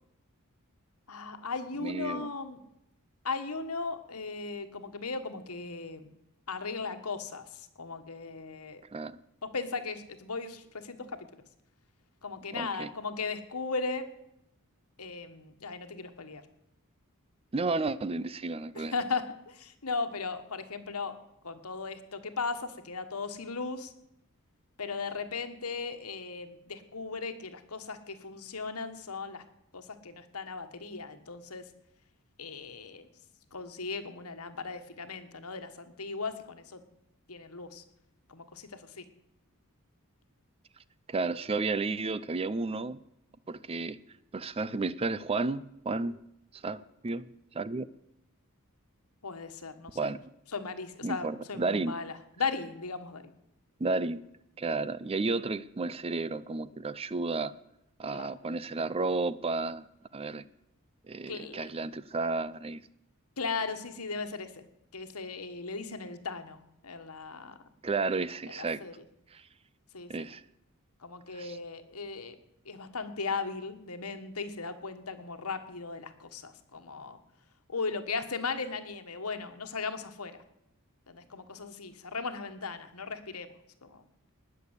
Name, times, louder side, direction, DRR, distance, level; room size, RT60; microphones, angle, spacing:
voice 1, 1.1-2.6 3.2-6.1 6.5-8.8 9.4-11.3 12.2-14.1 15.0-16.4 18.7-21.2 21.4-23.9 24.8-29.4 29.7-31.6 32.4-33.1 33.5-36.8 37.3-37.8 38.3-39.0 49.2-50.1 50.5-53.3 58.1-58.3 61.3-61.7 63.4-64.7 64.9-67.6 68.5-68.9 69.9-70.3 71.0-72.4 72.6-77.2 77.7-80.4 81.1-83.5 83.8-84.0, left 4 dB, 85° left, 9 dB, 1.5 m, -37 dB
voice 2, 1.7-2.3 8.9-9.2 12.5-12.9 17.5-18.9 41.1-43.0 43.5-44.0 44.3-46.2 46.5-47.9 49.9-50.2 51.0-52.0 53.8-54.2 54.6-57.5 58.0-59.8 60.1-60.4 61.1-62.8 67.8-68.8 69.3-69.5 70.1-70.4 71.3-71.6, right 3 dB, 25° right, 18 dB, 0.5 m, -32 dB
19.5 x 6.9 x 8.2 m, 0.82 s
head